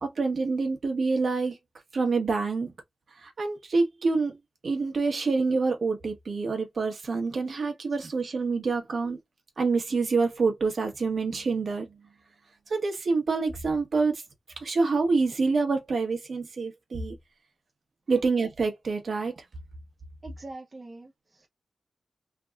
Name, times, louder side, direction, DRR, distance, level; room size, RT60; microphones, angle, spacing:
voice 1, 0.0-1.6 1.9-2.7 3.2-4.4 4.6-9.2 9.6-12.0 12.7-14.2 14.6-17.2 18.1-19.4, right 4 dB, 65° right, 1.1 m, -27 dB
voice 2, 20.2-21.5, right 2 dB, 35° right, 0.5 m, -44 dB
3.4 x 2.3 x 2.3 m
wide cardioid pair, 110°, 0 cm